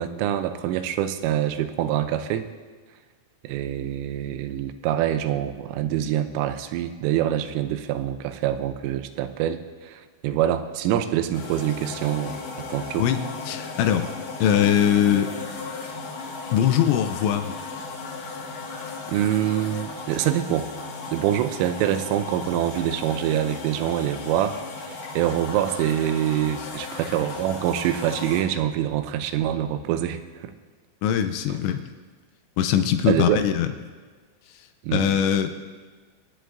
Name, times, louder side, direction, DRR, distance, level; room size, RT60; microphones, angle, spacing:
voice 1, 0.0-2.5 3.4-13.1 19.1-20.7 21.1-24.6 24.8-30.5 31.5-31.6 33.1-33.4 34.8-35.1, right 11 dB, 90° right, 10 dB, 3.2 m, -25 dB
sound 1, 11.3-28.4, left 4 dB, 65° left, 4.2 m, -36 dB
voice 2, 13.5-14.1 14.4-15.3 16.5-17.5 31.0-31.8 32.6-33.7 34.9-35.6, left 9 dB, 80° left, 8 dB, 2.7 m, -21 dB
25.0 x 10.0 x 2.6 m, 1.4 s
omnidirectional pair, 5.7 m